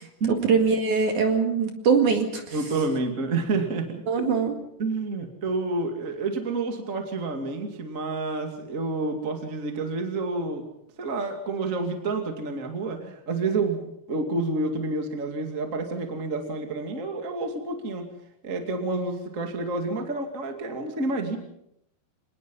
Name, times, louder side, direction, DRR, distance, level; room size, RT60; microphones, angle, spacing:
voice 1, 0.0-2.6 4.1-4.6, right 5 dB, 50° right, 4 dB, 2.9 m, -23 dB
voice 2, 2.5-4.3 4.8-10.6 11.0-13.8 14.1-18.1 18.4-21.4, right 3 dB, 30° right, 4 dB, 1.7 m, -29 dB
26.0 x 19.5 x 5.5 m, 0.77 s
omnidirectional pair, 5.2 m